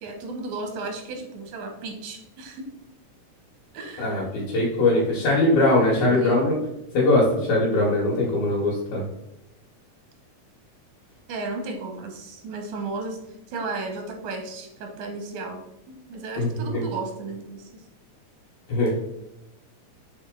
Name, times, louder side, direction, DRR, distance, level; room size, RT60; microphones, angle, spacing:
voice 1, 0.0-2.6 3.7-4.3 5.2-5.3 6.0-6.5 11.3-13.2 13.5-15.6 15.9-17.8, right 3 dB, 85° right, 2 dB, 2.6 m, -34 dB
voice 2, 4.0-6.5 6.9-9.0 16.4-16.8 18.7-18.9, left 2 dB, 70° left, -6 dB, 2.6 m, -21 dB
6.2 x 4.1 x 3.7 m, 0.88 s
omnidirectional pair, 3.5 m